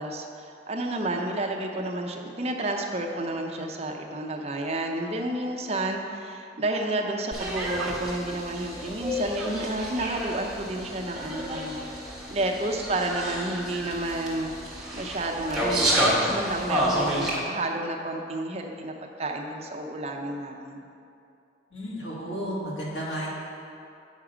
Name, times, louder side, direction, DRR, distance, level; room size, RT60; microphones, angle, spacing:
voice 1, 0.0-11.8 12.3-20.8, right 2 dB, 35° right, 2 dB, 0.6 m, -31 dB
sound 1, 7.3-17.4, equal, ahead, 1.3 m, -30 dB
voice 2, 21.7-23.3, equal, 75° left, -6 dB, 2.1 m, -33 dB
8.3 x 5.8 x 4.9 m, 2.6 s
head